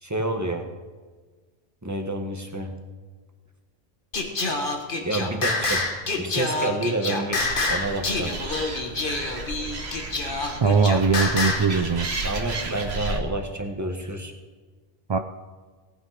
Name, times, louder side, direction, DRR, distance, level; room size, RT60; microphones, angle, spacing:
voice 1, 0.0-0.7 1.8-2.8 4.5-4.7 5.0-5.9 6.2-7.4 7.7-8.4 12.2-14.3, right 2 dB, 15° right, 4 dB, 1.5 m, -29 dB
Singing, 4.1-11.7, left 2 dB, 55° left, 1.7 m, -27 dB
Animal, 7.4-13.2, right 3 dB, 90° right, 1.8 m, -33 dB
voice 2, 10.6-12.1 15.1-15.2, right 5 dB, 40° right, 7 dB, 0.4 m, -20 dB
18.0 x 9.1 x 5.0 m, 1.4 s
omnidirectional pair, 1.1 m